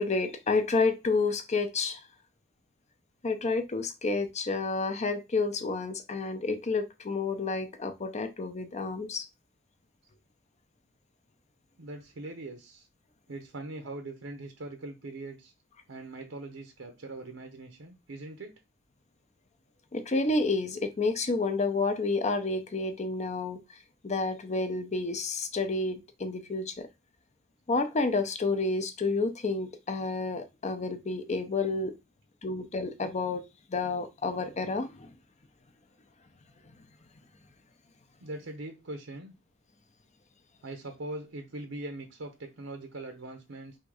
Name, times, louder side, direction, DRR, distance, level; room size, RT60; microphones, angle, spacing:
voice 1, 0.0-2.0 3.2-9.3 19.9-23.6 24.0-26.9 27.7-31.9 32.4-33.4 33.7-35.1 36.6-36.7, left 3 dB, 35° left, 0.6 m, -30 dB
voice 2, 11.8-12.9 13.3-15.5 15.9-18.6 38.2-39.3 40.6-43.8, right 2 dB, 75° right, 0.7 m, -41 dB
3.6 x 2.7 x 4.7 m
head